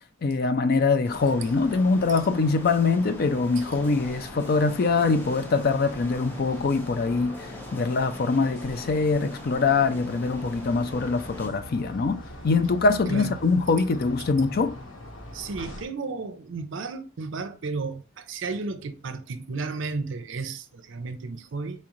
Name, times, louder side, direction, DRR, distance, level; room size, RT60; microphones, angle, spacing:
voice 1, 0.2-7.4 7.7-14.7, left 4 dB, 45° left, 0.4 m, -23 dB
sound 1, 1.0-11.5, left 1 dB, 10° left, 0.7 m, -43 dB
sound 2, 1.1-15.9, left 1 dB, 85° left, 1.2 m, -43 dB
voice 2, 13.1-13.4 15.3-21.8, right 4 dB, 60° right, 0.5 m, -33 dB
4.3 x 3.6 x 3.0 m
head